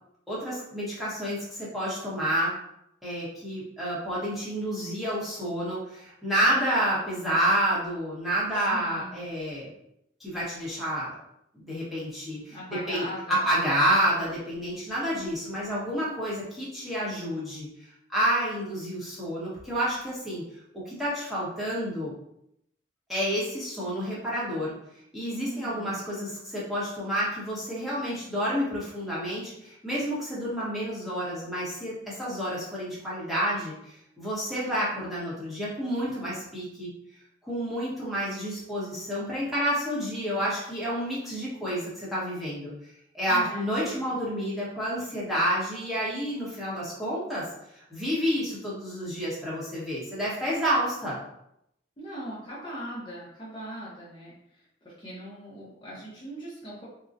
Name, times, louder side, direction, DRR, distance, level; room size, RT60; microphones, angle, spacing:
voice 1, 0.3-2.5 3.0-9.7 10.2-11.1 11.5-17.7 18.1-20.4 20.7-22.1 23.1-24.7 25.1-36.9 37.4-42.7 43.1-47.5 47.7-51.2, equal, ahead, -9 dB, 0.9 m, -29 dB
voice 2, 8.5-9.2 12.5-13.5 25.4-26.0 34.6-34.8 43.3-44.1 52.0-56.8, equal, 25° left, -8 dB, 0.7 m, -40 dB
3.7 x 2.1 x 2.6 m, 0.78 s
head